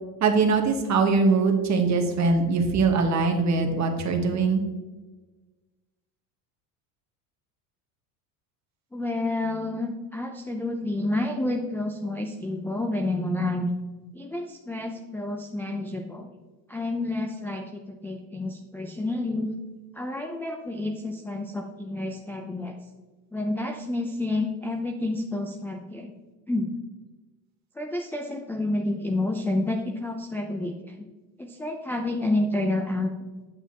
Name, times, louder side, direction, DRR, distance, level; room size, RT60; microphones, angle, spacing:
voice 1, 0.2-4.6, right 4 dB, 35° right, 4 dB, 1.4 m, -22 dB
voice 2, 8.9-13.7 14.1-16.3 16.7-19.5 19.9-22.8 23.3-26.1 26.5-26.7 27.8-30.9 31.4-33.1, left 2 dB, 5° left, 3 dB, 0.4 m, -29 dB
8.3 x 6.8 x 2.9 m, 1.2 s
supercardioid pair, 105°, 46 cm